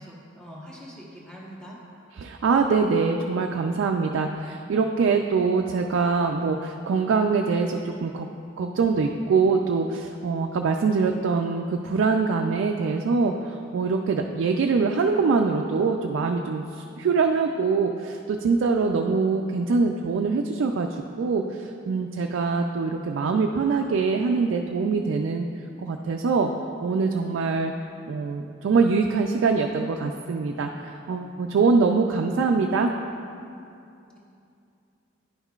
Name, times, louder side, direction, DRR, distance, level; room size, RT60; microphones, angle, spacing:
voice 1, 0.0-1.8 34.1-34.2, equal, 5° left, -5 dB, 1.1 m, -43 dB
voice 2, 2.2-8.3 8.6-25.4 25.8-26.5 26.8-27.7 28.1-32.9, right 4 dB, 75° right, 3 dB, 0.3 m, -24 dB
10.5 x 5.6 x 2.4 m, 2.6 s
head